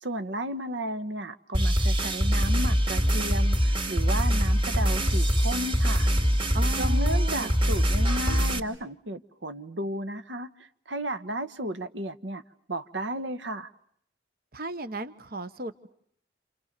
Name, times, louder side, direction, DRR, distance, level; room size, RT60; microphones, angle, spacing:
voice 1, 0.0-6.1 6.8-12.4 12.7-13.7, right 1 dB, 75° right, 1.3 m, -33 dB
sound 1, 1.5-8.6, equal, 30° right, 2.8 m, -24 dB
voice 2, 6.5-7.5 14.5-15.9, right 1 dB, 55° right, 1.2 m, -36 dB
29.5 x 28.5 x 6.8 m
head